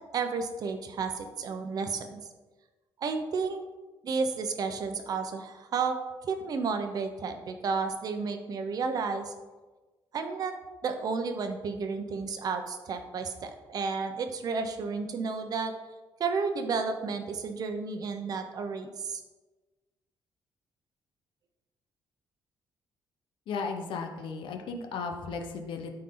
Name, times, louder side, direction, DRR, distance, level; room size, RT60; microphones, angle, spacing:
voice 1, 0.1-2.2 3.0-3.6 4.0-6.0 6.2-9.3 10.1-10.5 10.8-15.7 16.2-19.2, right 5 dB, 50° right, 7 dB, 0.9 m, -32 dB
voice 2, 23.5-26.0, left 4 dB, 75° left, 4 dB, 1.1 m, -35 dB
13.0 x 4.5 x 3.9 m, 1.2 s
cardioid pair, 160°, 9 cm